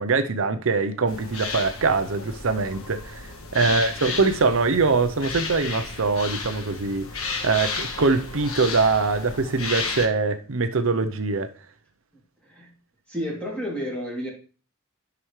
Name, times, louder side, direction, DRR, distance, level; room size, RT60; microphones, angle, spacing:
voice 1, 0.0-11.5, right 4 dB, 65° right, 0.7 m, -23 dB
sound 1, 1.1-10.1, left 4 dB, 75° left, 1.4 m, -33 dB
voice 2, 3.6-4.2 12.4-12.7 13.1-14.3, equal, 5° left, 2.8 m, -32 dB
11.0 x 5.9 x 3.2 m
head